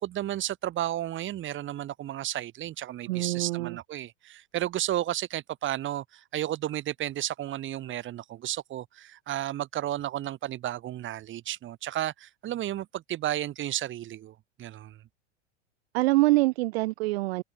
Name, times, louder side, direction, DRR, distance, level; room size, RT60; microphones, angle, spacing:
voice 1, 0.0-15.0, right 13 dB, 30° right, 2.3 m, -33 dB
voice 2, 3.1-3.8 15.9-17.4, right 21 dB, 55° right, 1.1 m, -25 dB
hypercardioid pair, 95°, 36 cm